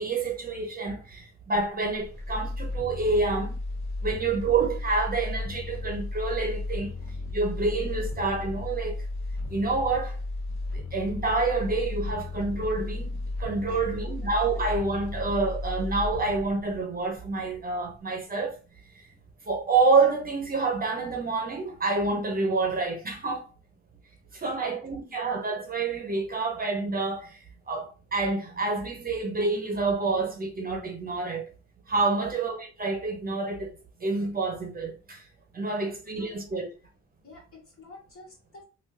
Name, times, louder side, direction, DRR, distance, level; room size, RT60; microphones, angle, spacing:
voice 1, 0.0-3.6 4.0-6.9 7.3-8.9 9.5-10.2 10.7-18.6 19.5-23.5 24.3-27.4 27.7-31.4 31.9-33.7 34.0-35.2 35.5-36.7, right 3 dB, 30° right, 0.9 m, -28 dB
sound 1, 1.5-17.6 18.0-18.1, left 2 dB, 10° left, 1.7 m, -34 dB
voice 2, 24.4-25.2 32.1-32.3 35.8-35.9 36.2-36.7 37.2-38.6, left 2 dB, 45° left, 2.0 m, -50 dB
3.6 x 2.6 x 2.8 m
cardioid pair, 90°, 30 cm